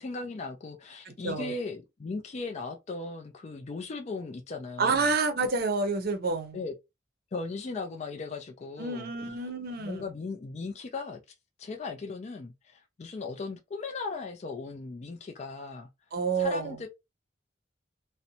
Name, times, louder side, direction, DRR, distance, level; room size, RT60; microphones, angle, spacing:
voice 1, 0.0-5.1 6.5-6.7 7.3-9.1 9.8-11.2 11.6-15.9 16.4-16.9, left 3 dB, 35° left, 0.4 m, -37 dB
voice 2, 1.1-1.5 4.8-6.6 8.8-10.0 16.1-16.8, right 4 dB, 55° right, 0.6 m, -29 dB
2.6 x 2.1 x 2.7 m
head